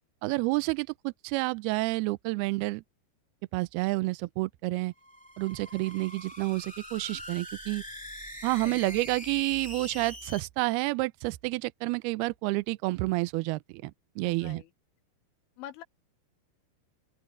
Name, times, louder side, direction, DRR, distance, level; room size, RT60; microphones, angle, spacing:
voice 1, 0.2-2.8 3.5-4.9 5.4-7.8 8.4-13.9 14.2-14.6, right 23 dB, 80° right, 2.3 m, -29 dB
sound 1, 5.0-10.4, equal, 5° left, 1.1 m, -43 dB
voice 2, 8.6-9.0 14.2-14.7 15.6-15.8, left 11 dB, 85° left, 3.7 m, -45 dB
open air
omnidirectional pair, 5.2 m